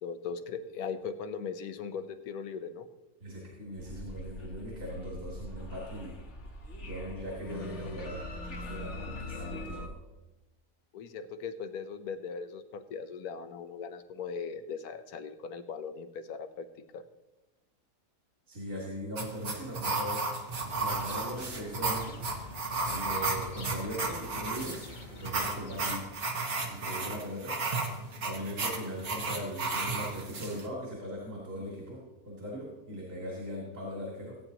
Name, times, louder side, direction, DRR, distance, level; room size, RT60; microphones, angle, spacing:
voice 1, 0.0-2.9 10.9-16.7 16.9-17.0, left 6 dB, 85° left, 9 dB, 1.3 m, -39 dB
voice 2, 3.2-6.2 6.8-9.9 18.5-20.3 20.8-22.2 22.8-24.8 25.1-26.1 26.6-27.6 28.2-34.4, equal, 60° right, -4 dB, 3.0 m, -39 dB
sound 1, 3.8-9.9, left 2 dB, 55° left, 1.3 m, -42 dB
sound 2, 19.1-30.7, right 3 dB, 75° right, 2.0 m, -34 dB
sound 3, 20.6-26.0, left 3 dB, 35° left, 1.0 m, -48 dB
17.0 x 9.1 x 2.9 m, 1.0 s
omnidirectional pair, 1.5 m